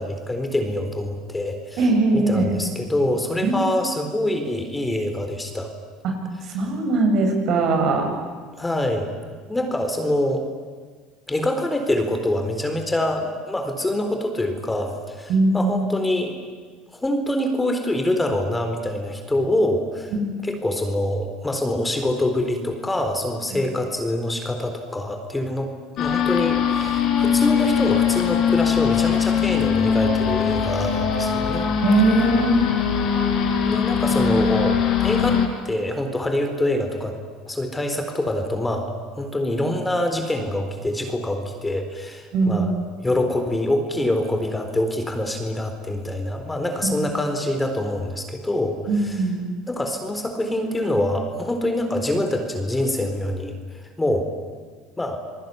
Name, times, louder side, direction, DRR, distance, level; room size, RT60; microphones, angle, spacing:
voice 1, 0.0-1.8 2.1-5.7 8.6-9.1 9.5-10.4 11.3-16.3 16.9-20.1 20.4-31.7 33.7-37.2 37.5-42.7 43.0-48.8 49.0-49.1 49.7-54.3 55.0-55.2, left 1 dB, 10° left, 6 dB, 4.1 m, -25 dB
voice 2, 1.8-2.5 3.4-3.6 6.0-6.1 6.4-8.1 15.3-15.8 20.1-20.3 31.8-32.6 42.3-42.7 46.8-46.9 48.9-49.4, right 2 dB, 55° right, 3 dB, 7.5 m, -20 dB
sound 1, 26.0-35.5, left 7 dB, 55° left, 4.8 m, -21 dB
28.0 x 19.5 x 9.7 m, 1.5 s
supercardioid pair, 90°, 0 cm